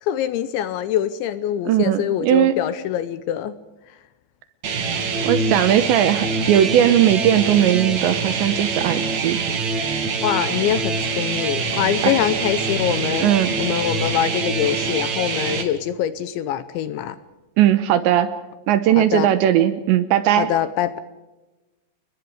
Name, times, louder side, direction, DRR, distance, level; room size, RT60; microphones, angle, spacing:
voice 1, 0.0-3.6 10.2-13.3 13.6-17.2 19.0-19.3 20.4-21.0, left 11 dB, 80° left, 13 dB, 2.8 m, -24 dB
voice 2, 1.7-2.6 5.2-9.4 12.0-12.2 13.2-13.5 17.6-18.3 18.7-20.5, right 11 dB, 75° right, 11 dB, 2.9 m, -18 dB
sound 1, 4.6-15.6, right 4 dB, 45° right, 2.6 m, -24 dB
29.5 x 21.0 x 5.0 m, 1.1 s
omnidirectional pair, 5.9 m